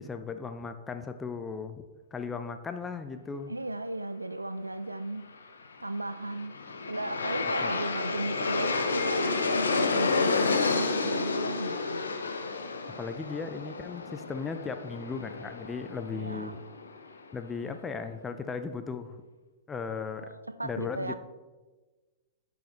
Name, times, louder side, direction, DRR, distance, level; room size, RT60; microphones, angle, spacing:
voice 1, 0.0-1.8 2.1-3.5 7.6-7.7 13.0-16.6 17.3-19.2 19.7-20.4 20.6-21.1, left 5 dB, 15° left, 0.5 m, -36 dB
voice 2, 3.5-5.3 5.8-6.6 6.9-12.0 16.1-16.6 20.2-21.1, right 2 dB, 90° right, 0.3 m, -35 dB
Aircraft, 6.1-17.2, left 4 dB, 75° left, 0.6 m, -30 dB
10.0 x 4.8 x 3.1 m
figure-of-eight pair, 105°, 0 cm